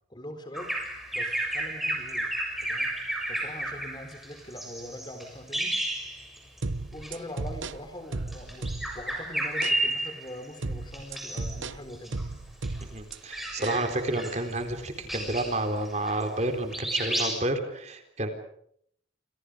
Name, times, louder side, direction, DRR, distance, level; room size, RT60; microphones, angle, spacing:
voice 1, 0.1-0.8 1.1-2.3 2.6-2.9 3.3-5.8 6.9-12.2, equal, 25° left, 8 dB, 3.9 m, -42 dB
Bird vocalization bird call bird song, 0.5-6.6 6.9-7.1 8.2-10.5 10.9-11.6 11.9-16.5 16.7-17.3, right 1 dB, ahead, 6.9 m, -32 dB
sound 1, 6.6-9.1 9.6-9.8 10.6-13.2 13.6-13.8, right 3 dB, 85° right, 1.0 m, -35 dB
voice 2, 12.9-18.3, right 2 dB, 35° right, 6 dB, 4.0 m, -30 dB
28.5 x 27.5 x 5.1 m, 0.69 s
head